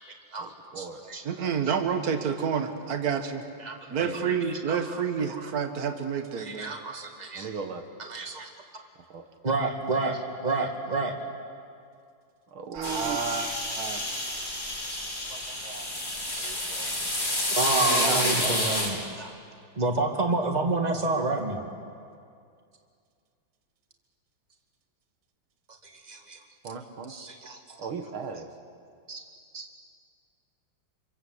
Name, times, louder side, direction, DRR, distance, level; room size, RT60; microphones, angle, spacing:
voice 1, 0.3-1.3 3.6-5.0 5.3-5.5 6.4-7.6 8.0-8.5 9.4-11.2 13.3-13.6 14.9-15.0 15.3-15.9 16.4-17.1 17.5-19.3 19.7-21.6 25.7-26.4 27.1-27.8 29.1-29.2 29.5-29.7, right 3 dB, 20° right, 2 dB, 2.3 m, -30 dB
voice 2, 1.2-3.5 3.9-6.7 12.7-14.0 17.9-18.7, right 6 dB, 50° right, 6 dB, 2.0 m, -29 dB
voice 3, 7.4-7.8 9.1-9.2 12.5-13.2 18.1-18.5 26.6-27.1 27.8-28.5, right 5 dB, 85° right, 6 dB, 2.4 m, -35 dB
sound 1, 12.8-18.9, left 1 dB, 40° left, 5.1 m, -29 dB
27.0 x 26.5 x 8.1 m, 2.3 s
omnidirectional pair, 2.2 m